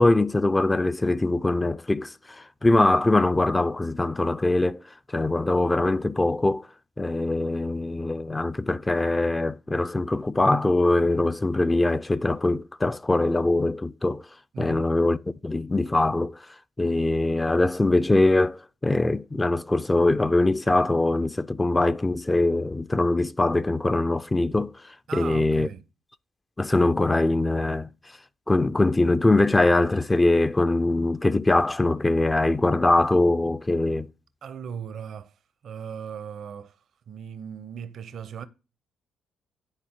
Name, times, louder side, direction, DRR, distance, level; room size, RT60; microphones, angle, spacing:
voice 1, 0.0-2.1 2.6-4.8 5.1-6.6 7.0-14.2 14.6-15.2 15.4-16.4 16.8-24.7 25.1-25.7 26.6-27.9 28.5-34.1, left 2 dB, 20° left, 0.4 m, -22 dB
voice 2, 14.5-14.9 25.1-25.8 34.4-35.3 35.6-36.8 37.1-38.5, right 7 dB, 65° right, 0.6 m, -37 dB
9.7 x 4.2 x 4.3 m
hypercardioid pair, 55°, 0 cm